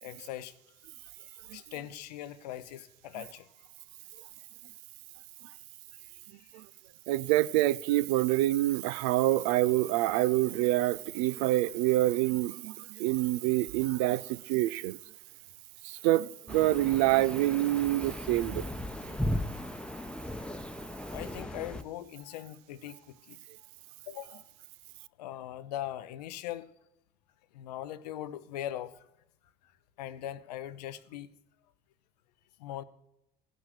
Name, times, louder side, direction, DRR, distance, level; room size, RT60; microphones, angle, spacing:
voice 1, 0.0-0.5 1.2-3.7 6.4-6.6 15.9-16.1 21.1-23.4 24.1-24.5 25.2-26.7 27.5-29.1 30.0-31.3 32.6-32.8, left 12 dB, 85° left, 0.7 m, -41 dB
voice 2, 7.1-15.0 15.8-18.6, right 16 dB, 70° right, 0.4 m, -26 dB
sound 1, 16.5-21.8, left 1 dB, 5° left, 0.9 m, -37 dB
15.0 x 6.1 x 6.5 m
hypercardioid pair, 70°, 20 cm